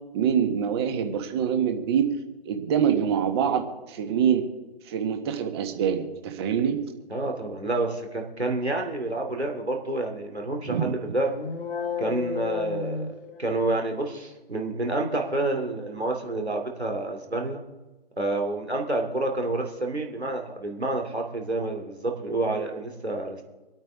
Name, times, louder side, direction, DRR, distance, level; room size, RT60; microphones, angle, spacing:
voice 1, 0.1-2.1 2.4-4.4 4.9-6.8 10.7-10.8, right 8 dB, 25° right, 5 dB, 1.4 m, -25 dB
voice 2, 7.1-11.3 12.0-13.1 13.4-17.6 18.2-23.4, right 2 dB, 85° right, 2 dB, 2.9 m, -28 dB
sound 1, 11.3-13.8, left 5 dB, 60° left, 1.2 m, -32 dB
26.0 x 8.8 x 3.6 m, 1.1 s
figure-of-eight pair, 135°, 32 cm